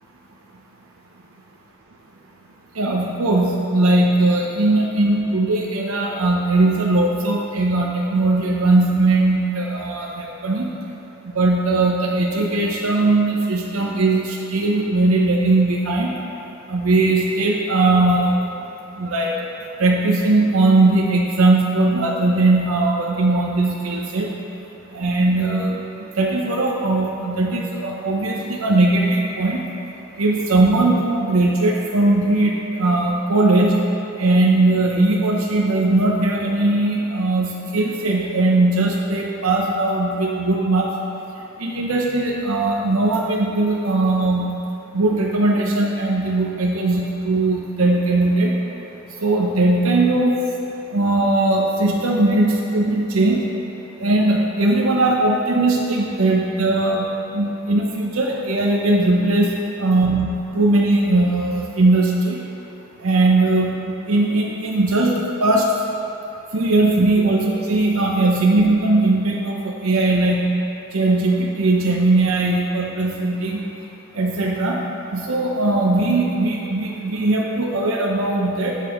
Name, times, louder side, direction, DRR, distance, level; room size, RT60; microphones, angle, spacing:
voice 1, 2.8-10.7 11.2-16.1 16.7-18.3 19.0-19.3 19.8-24.3 24.9-29.6 30.2-33.8 34.2-40.9 41.6-44.5 44.9-48.5 49.2-50.4 50.9-53.4 54.0-57.1 57.3-59.5 59.8-62.4 63.0-65.1 65.4-65.7 66.5-70.5 70.9-73.6 74.1-74.8 75.1-78.7, right 2 dB, 85° right, -1 dB, 0.8 m, -19 dB
10.5 x 8.4 x 3.1 m, 2.8 s
head